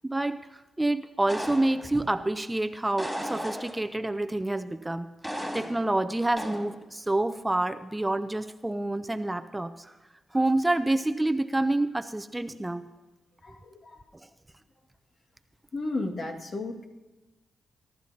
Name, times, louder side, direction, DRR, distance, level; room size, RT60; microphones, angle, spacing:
voice 1, 0.0-5.1 5.5-9.9 10.3-12.9 14.1-14.3, right 2 dB, 15° right, 10 dB, 0.6 m, -28 dB
sound 1, 1.3-2.2 3.0-4.0 5.2-6.0 6.4-6.7, equal, ahead, 3.2 m, -35 dB
voice 2, 13.4-14.0 15.7-16.8, left 2 dB, 55° left, 2 dB, 2.0 m, -34 dB
22.5 x 12.0 x 2.9 m, 1.1 s
cardioid pair, 65°, 0 cm